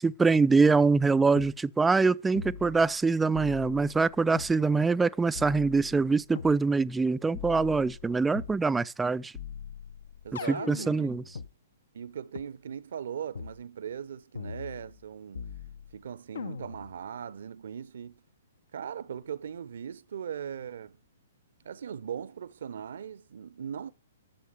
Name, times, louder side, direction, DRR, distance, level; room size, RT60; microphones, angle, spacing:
voice 1, 0.0-9.3 10.3-11.2, right 4 dB, 10° right, 0.5 m, -24 dB
sound 1, 1.4-1.5 2.4-3.0 3.4-4.6 5.4-6.6 7.3-8.6 9.4-11.5 12.4-12.5 13.4-13.6 14.4-15.1 15.4-16.0 16.4-17.0, left 6 dB, 65° left, 0.9 m, -41 dB
voice 2, 10.2-11.1 11.9-15.5 15.9-18.2 18.7-21.0 21.6-23.9, right 8 dB, 60° right, 0.9 m, -39 dB
11.5 x 7.2 x 6.7 m
figure-of-eight pair, 120°, 0 cm